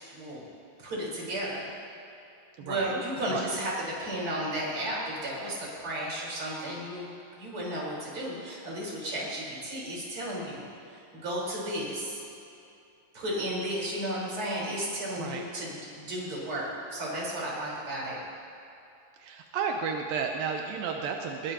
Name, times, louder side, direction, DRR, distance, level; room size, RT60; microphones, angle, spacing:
voice 1, 0.1-0.5 0.8-1.7 2.6-10.6 11.1-12.2 13.1-18.2, right 1 dB, 35° right, -6 dB, 5.3 m, -33 dB
voice 2, 2.7-3.0 3.3-3.4 15.2-15.4 19.2-21.5, right 6 dB, 85° right, 2 dB, 2.7 m, -32 dB
21.5 x 21.0 x 3.0 m, 2.7 s
omnidirectional pair, 4.0 m